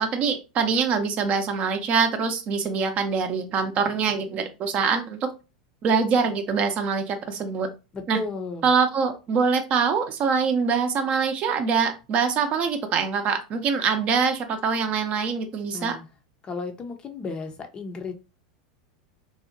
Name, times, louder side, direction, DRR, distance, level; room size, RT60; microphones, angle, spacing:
voice 1, 0.0-5.3 5.8-7.7 8.1-8.2 8.6-16.0, right 5 dB, 40° right, 7 dB, 0.5 m, -24 dB
voice 2, 7.9-8.7 15.7-16.1 16.4-18.1, left 3 dB, 25° left, 6 dB, 0.5 m, -34 dB
2.7 x 2.1 x 2.7 m, 0.29 s
hypercardioid pair, 95°, 3 cm